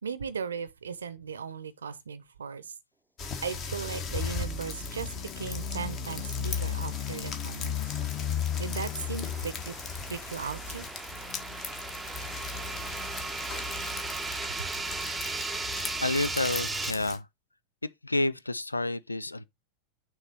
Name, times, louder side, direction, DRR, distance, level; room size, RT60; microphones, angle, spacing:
voice 1, 0.0-2.7 3.4-7.8 8.6-9.8 10.1-10.9 14.6-14.7, right 6 dB, 70° right, 0.7 m, -37 dB
sound 1, 3.2-17.2, left 6 dB, 35° left, 1.4 m, -35 dB
sound 2, 6.5-16.9, right 4 dB, 10° right, 0.7 m, -37 dB
voice 2, 16.0-17.3 18.0-19.4, left 2 dB, 80° left, 0.4 m, -29 dB
6.4 x 3.1 x 5.6 m
figure-of-eight pair, 90°, 0 cm